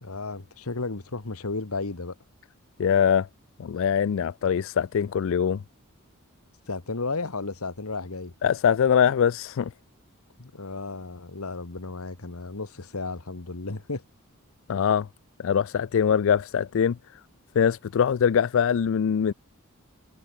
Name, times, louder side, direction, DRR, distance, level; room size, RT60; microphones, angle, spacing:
voice 1, 0.0-2.1 6.7-8.3 10.4-14.0, left 3 dB, 85° left, 1.5 m, -33 dB
voice 2, 2.8-3.3 3.6-5.6 8.4-9.7 14.7-15.1 15.4-17.0 17.6-19.3, left 7 dB, 65° left, 0.4 m, -22 dB
head